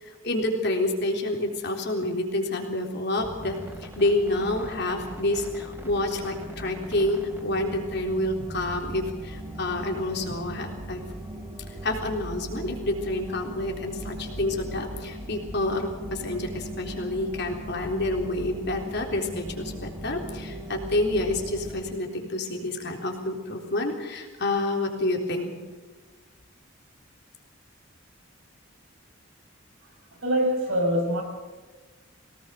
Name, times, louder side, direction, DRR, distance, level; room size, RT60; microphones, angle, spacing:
voice 1, 0.0-11.0 11.8-25.5, left 1 dB, 55° left, 2 dB, 3.7 m, -28 dB
sound 1, 3.2-21.9, right 1 dB, 10° right, 3.8 m, -39 dB
voice 2, 30.1-31.2, equal, 85° right, 2 dB, 5.8 m, -24 dB
22.5 x 18.5 x 6.6 m, 1.3 s
head